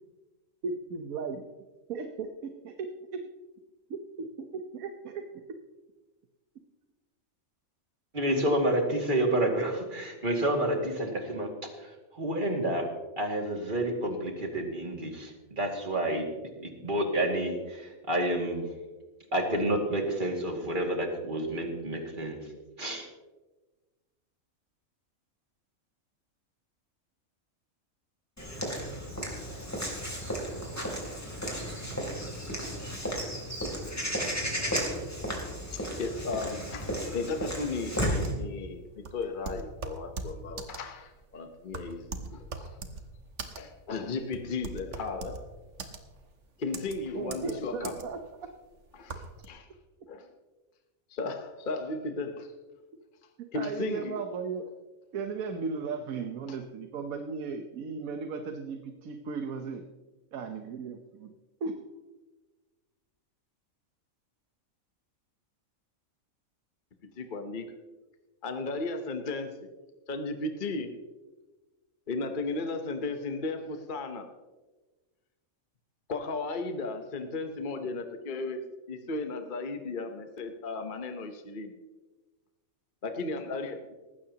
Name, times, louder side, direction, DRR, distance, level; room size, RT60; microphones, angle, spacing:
voice 1, 0.6-1.5 1.9-2.9 3.9-5.3 47.1-48.2 53.5-54.6 55.1-59.8 60.3-61.3 61.6-61.7, right 5 dB, 80° right, 6 dB, 1.4 m, -36 dB
voice 2, 8.1-11.5 11.8-12.9 13.2-16.3 16.6-18.6 19.3-22.5 22.8-23.1, right 1 dB, 35° right, 1 dB, 2.4 m, -29 dB
Walk footsteps / Bird vocalization bird call bird song, 28.4-38.3, equal, 10° left, 3.1 m, -34 dB
voice 3, 35.7-42.8 43.5-45.5 45.8-45.9 46.6-47.9 48.9-49.7 50.1-50.3 51.1-52.5 53.5-54.2 56.5-56.6 67.0-67.7 68.4-69.7 70.1-70.9 72.1-74.3 76.1-78.6 78.9-81.7 83.0-83.8, left 3 dB, 40° left, 6 dB, 1.0 m, -35 dB
sound 1, 38.2-49.5, right 4 dB, 55° right, 1.5 m, -41 dB
19.0 x 15.5 x 2.9 m, 1.2 s
omnidirectional pair, 1.5 m